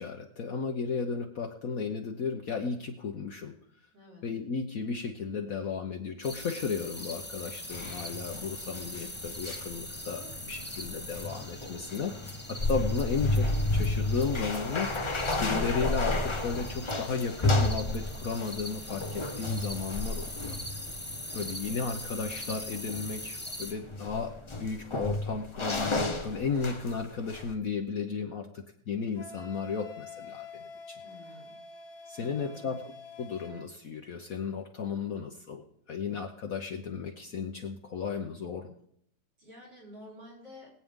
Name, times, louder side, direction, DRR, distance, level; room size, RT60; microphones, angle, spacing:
voice 1, 0.0-3.5 4.2-12.1 12.5-20.5 21.3-31.0 32.1-32.8 33.2-38.7, left 5 dB, 55° left, 3 dB, 1.2 m, -34 dB
voice 2, 3.9-4.3 10.1-10.5 21.3-21.5 31.0-31.6 32.2-32.8 39.4-40.7, left 1 dB, 75° right, -3 dB, 5.1 m, -51 dB
sound 1, 6.2-23.7, left 1 dB, 5° left, 1.0 m, -42 dB
sound 2, 7.7-27.0 27.3-27.5, left 2 dB, 30° left, 0.5 m, -32 dB
Wind instrument woodwind instrument, 29.1-33.7, left 4 dB, 75° left, 2.2 m, -47 dB
21.5 x 8.6 x 3.7 m, 0.69 s
omnidirectional pair, 1.9 m